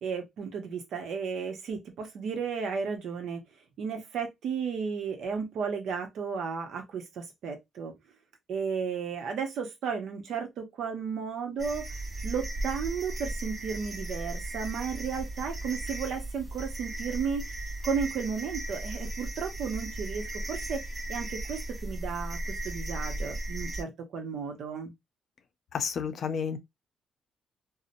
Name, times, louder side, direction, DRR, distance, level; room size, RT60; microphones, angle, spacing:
voice 1, 0.0-3.4 3.8-7.9 8.5-11.9 12.2-17.4 17.8-20.8 21.1-24.9, right 6 dB, 75° right, 0.8 m, -34 dB
sound 1, 11.6-23.8, right 1 dB, 35° right, 1.2 m, -36 dB
voice 2, 25.7-26.6, left 7 dB, 60° left, 0.5 m, -31 dB
2.8 x 2.1 x 2.5 m
cardioid pair, 90°, 0 cm